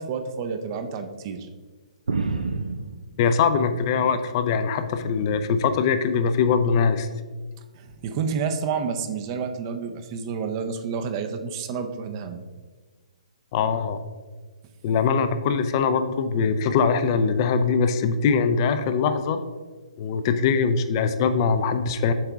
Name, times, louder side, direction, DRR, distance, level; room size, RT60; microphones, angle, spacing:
voice 1, 0.0-1.5 7.8-12.4, right 6 dB, 35° right, 7 dB, 0.6 m, -29 dB
sound 1, 2.1-4.3 4.7-5.6 6.5-6.8 7.8-8.0, right 4 dB, 85° right, 0.5 m, -32 dB
voice 2, 3.2-7.1 13.5-14.0 14.8-19.4 20.0-22.1, left 5 dB, 35° left, 10 dB, 0.5 m, -22 dB
7.4 x 4.5 x 3.5 m, 1.4 s
hypercardioid pair, 145°, 4 cm